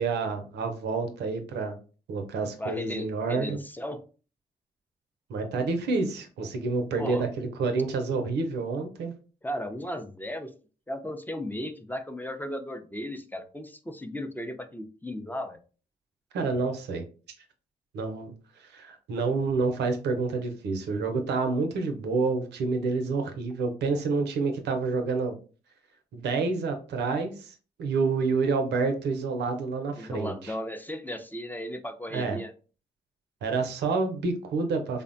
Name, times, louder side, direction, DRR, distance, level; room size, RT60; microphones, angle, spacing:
voice 1, 0.0-1.8 2.1-3.6 5.3-9.1 16.3-17.0 17.9-18.3 18.7-25.3 26.1-27.5 27.8-30.5 32.1-32.4 33.4-35.0, right 4 dB, 85° right, 6 dB, 0.5 m, -28 dB
voice 2, 2.6-4.0 7.0-7.3 9.4-10.5 10.9-15.6 30.0-32.5, equal, 10° left, 7 dB, 0.5 m, -35 dB
3.3 x 2.1 x 2.5 m, 0.37 s
supercardioid pair, 50°, 17 cm